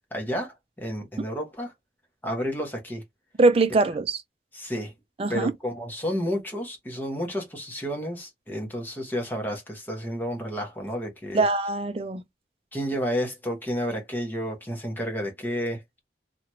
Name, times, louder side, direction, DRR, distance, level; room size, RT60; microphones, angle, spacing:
voice 1, 0.1-1.7 2.2-3.0 4.5-4.9 5.3-11.4 12.7-15.8, equal, 10° left, 1.0 m, -31 dB
voice 2, 3.4-4.2 5.2-5.5 11.3-12.2, right 3 dB, 30° right, 0.4 m, -22 dB
2.9 x 2.5 x 2.9 m
head